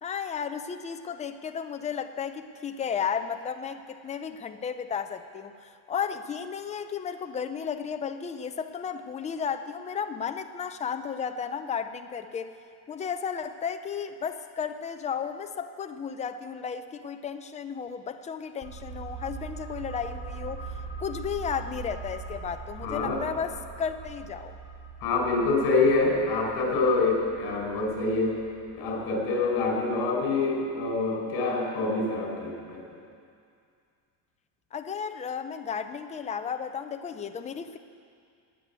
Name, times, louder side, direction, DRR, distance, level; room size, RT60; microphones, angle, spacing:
voice 1, 0.0-12.5 12.9-20.6 21.0-24.6 34.7-37.8, left 7 dB, 15° left, 8 dB, 0.4 m, -34 dB
sound 1, 18.6-30.0 30.3-30.4, right 4 dB, 10° right, 1.2 m, -42 dB
voice 2, 22.8-23.2 25.0-28.4 28.7-32.8, left 3 dB, 60° left, -1 dB, 5.0 m, -26 dB
18.5 x 9.6 x 8.2 m, 2.3 s
cardioid pair, 170°, 45 cm